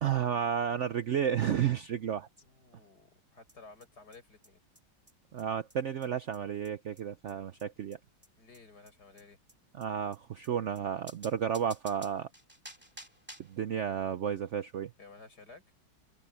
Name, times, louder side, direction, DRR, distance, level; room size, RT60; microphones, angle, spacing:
voice 1, 0.0-2.3 5.3-8.0 9.8-12.3 13.5-14.9, right 8 dB, 90° right, 0.6 m, -32 dB
voice 2, 2.4-4.6 8.4-9.4 15.0-15.6, left 3 dB, 55° left, 7.5 m, -54 dB
sound 1, 3.5-3.6 3.8-3.9 4.1-4.2 4.4-4.5 4.7-4.8 5.1-5.2 5.4-5.5 5.7-5.8 6.0-6.1 6.3-6.4 6.6-6.7 7.0-7.1 7.3-7.4 7.6-7.7 7.9-8.0 8.2-8.3 8.5-8.6 8.8-8.9 9.2-9.3 9.5-9.6 9.8-9.9 10.1-10.2 10.4-10.5 10.7-10.8 11.1-13.6, right 1 dB, 5° right, 2.2 m, -51 dB
omnidirectional pair, 2.0 m